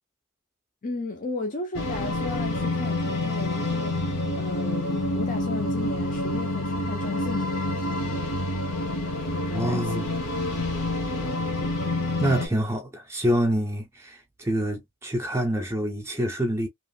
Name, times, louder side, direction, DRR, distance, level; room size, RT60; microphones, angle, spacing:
voice 1, 0.8-8.3 9.3-10.4 11.1-11.8, left 3 dB, 35° left, 0.5 m, -36 dB
sound 1, 1.7-12.5, left 2 dB, 70° left, 1.1 m, -28 dB
voice 2, 9.5-10.1 12.2-16.7, right 1 dB, 10° right, 0.5 m, -26 dB
3.0 x 2.4 x 2.3 m
head